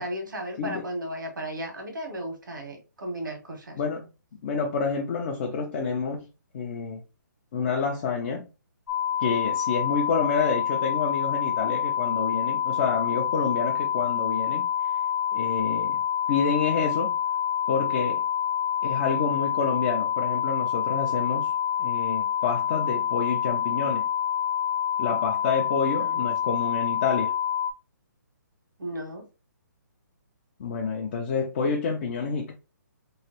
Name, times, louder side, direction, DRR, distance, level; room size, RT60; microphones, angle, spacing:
voice 1, 0.0-3.8 26.0-26.3 28.8-29.2, right 1 dB, 85° right, 1.5 m, -35 dB
voice 2, 3.8-4.1 4.4-6.3 6.5-7.0 7.5-8.5 9.2-14.7 15.3-16.0 16.3-17.2 17.7-18.2 18.8-21.5 21.8-24.0 25.0-27.3 30.6-32.5, left 5 dB, 35° left, 0.5 m, -28 dB
sound 1, 8.9-27.7, left 9 dB, 75° left, 0.7 m, -27 dB
3.1 x 2.9 x 2.9 m
hypercardioid pair, 155°, 10 cm